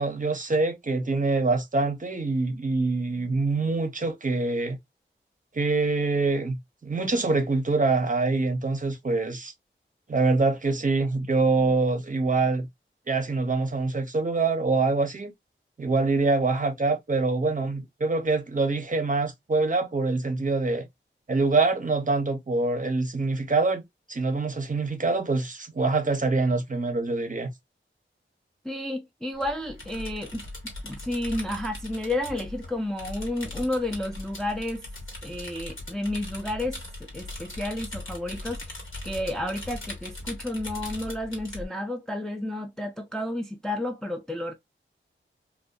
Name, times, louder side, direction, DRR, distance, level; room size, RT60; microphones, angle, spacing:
voice 1, 0.0-4.8 5.5-9.5 10.1-12.7 13.1-15.3 15.8-20.8 21.3-23.8 24.1-27.5, right 3 dB, 40° right, 0.6 m, -25 dB
voice 2, 28.6-30.4 30.8-34.9 35.2-36.8 37.1-38.6 39.0-44.5, left 1 dB, 5° left, 0.4 m, -31 dB
sound 1, 29.3-41.7, left 1 dB, 70° left, 1.2 m, -39 dB
2.6 x 2.2 x 2.2 m
wide cardioid pair, 60°, 21 cm